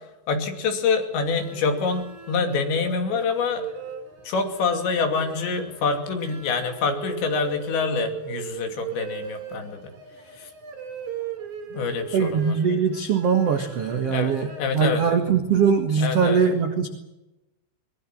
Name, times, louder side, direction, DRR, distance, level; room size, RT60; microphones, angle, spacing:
voice 1, 0.3-3.7 4.2-9.9 10.4-10.5 11.7-12.6 14.1-14.3 14.6-15.0 16.0-16.4, left 4 dB, 65° left, 5 dB, 4.8 m, -26 dB
sound 1, 1.3-14.6, right 7 dB, 45° right, 3.8 m, -38 dB
voice 2, 12.1-16.9, right 6 dB, 80° right, 6 dB, 1.3 m, -22 dB
23.5 x 21.0 x 7.5 m, 0.97 s
omnidirectional pair, 5.7 m